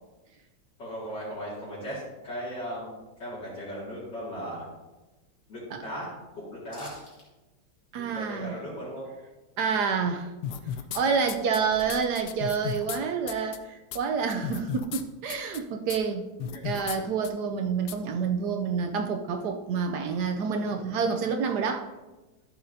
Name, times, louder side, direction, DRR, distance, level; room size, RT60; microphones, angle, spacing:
voice 1, 0.8-4.7 5.5-6.1 6.3-6.9 8.0-9.0 16.5-16.6 20.5-20.8, equal, 70° left, -10 dB, 3.0 m, -37 dB
sound 1, 6.7-7.3 7.6-7.7, left 2 dB, 45° left, 2.4 m, -48 dB
voice 2, 7.9-8.6 9.6-10.3 10.9-21.9, right 5 dB, 70° right, 5 dB, 1.1 m, -28 dB
sound 2, 10.4-11.0 11.3-13.0 13.3-13.6 13.9-14.0 14.3-15.0 15.3-15.6 15.9-16.0 16.4-17.0 17.2-17.3 17.9-18.0, left 9 dB, 85° left, 1.4 m, -34 dB
12.5 x 6.5 x 2.7 m, 1.1 s
omnidirectional pair, 2.1 m